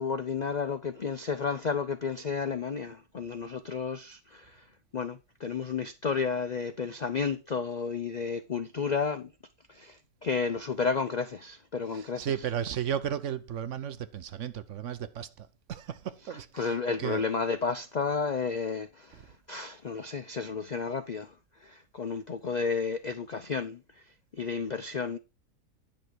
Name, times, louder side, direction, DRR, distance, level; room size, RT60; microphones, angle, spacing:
voice 1, 0.0-4.6 4.9-9.3 9.7-12.3 16.6-24.0 24.3-25.2, left 5 dB, 90° left, 0.3 m, -32 dB
voice 2, 11.9-17.2, right 9 dB, 60° right, 0.9 m, -35 dB
10.5 x 6.4 x 4.6 m
omnidirectional pair, 1.6 m